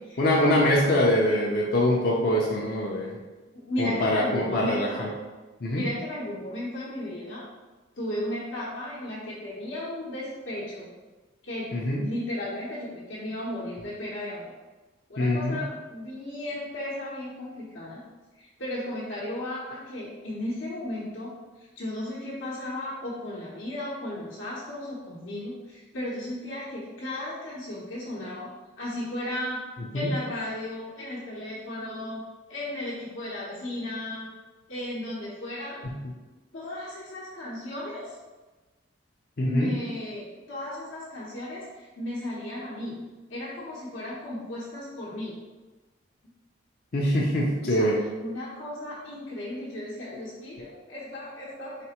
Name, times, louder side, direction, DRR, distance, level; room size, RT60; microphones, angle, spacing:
voice 1, 0.2-3.1 3.8-5.1 5.6-5.8 11.7-12.0 15.2-15.6 29.9-30.1 39.4-39.7 46.9-48.0, left 1 dB, 45° left, -4 dB, 0.5 m, -24 dB
voice 2, 3.5-5.0 5.7-7.4 8.0-10.9 11.4-14.5 15.1-18.0 18.4-28.5 28.8-29.6 29.9-32.2 32.5-34.3 34.7-35.8 36.5-38.2 39.5-43.0 43.3-45.4 47.6-47.9 48.2-51.8, left 1 dB, 70° left, -7 dB, 0.9 m, -35 dB
4.1 x 3.4 x 2.9 m, 1.2 s
head